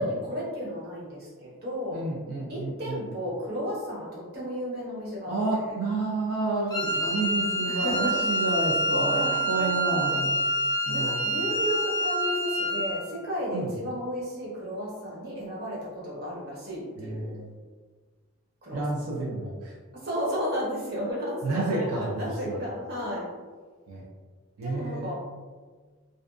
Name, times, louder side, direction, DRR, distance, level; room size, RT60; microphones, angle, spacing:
voice 1, 0.0-2.0 2.5-5.6 7.6-8.2 9.1-10.1 10.9-17.3 18.6-18.8 19.9-23.3 24.6-25.1, equal, 45° right, -7 dB, 0.9 m, -33 dB
voice 2, 1.9-3.0 5.3-10.4 10.9-11.1 13.5-13.7 17.0-17.5 18.7-19.7 21.4-22.6 23.9-24.0 24.6-25.1, right 2 dB, 85° right, -3 dB, 0.4 m, -30 dB
Wind instrument woodwind instrument, 6.7-13.0, right 1 dB, 20° left, 0.3 m, -27 dB
2.5 x 2.2 x 2.4 m, 1.5 s
head